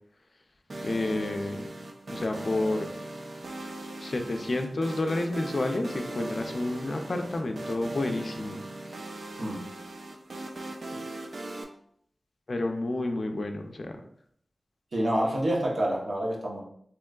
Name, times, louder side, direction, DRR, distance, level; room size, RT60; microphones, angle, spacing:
sound 1, 0.7-11.6, right 1 dB, 65° right, 0.4 m, -39 dB
voice 1, 0.8-1.7 2.1-2.9 4.0-8.6 12.5-13.9, left 2 dB, 55° left, 5 dB, 0.4 m, -30 dB
voice 2, 14.9-16.6, right 1 dB, 80° right, -2 dB, 0.7 m, -27 dB
3.4 x 2.9 x 2.3 m, 0.67 s
wide cardioid pair, 85°, 0 cm